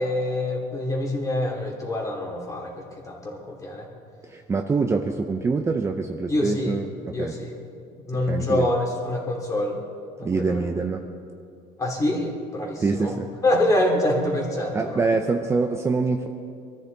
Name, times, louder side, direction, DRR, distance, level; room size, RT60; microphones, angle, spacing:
voice 1, 0.0-2.7 3.0-3.9 6.3-6.8 7.1-7.5 8.0-9.8 10.2-10.7 11.8-13.1 13.4-15.0, left 1 dB, 20° left, -1 dB, 2.8 m, -25 dB
voice 2, 4.2-7.4 8.3-8.7 10.2-11.0 12.8-13.3 14.7-16.3, right 4 dB, 15° right, 4 dB, 0.6 m, -25 dB
24.0 x 13.5 x 4.0 m, 2.4 s
cardioid pair, 145°, 15 cm